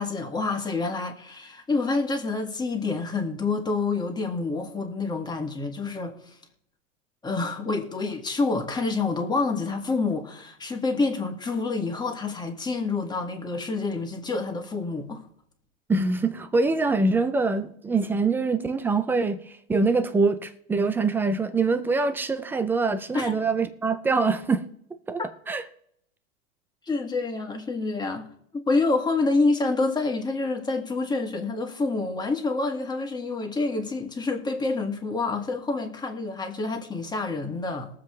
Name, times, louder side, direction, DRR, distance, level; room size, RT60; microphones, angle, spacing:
voice 1, 0.0-6.3 7.2-15.2 23.1-23.3 25.2-25.3 26.9-28.3 28.5-37.9, left 3 dB, 10° left, 1.7 m, -27 dB
voice 2, 15.9-24.6 25.1-25.2 25.5-25.6, right 3 dB, 5° right, 0.3 m, -24 dB
21.5 x 7.5 x 3.2 m
supercardioid pair, 135°, 39 cm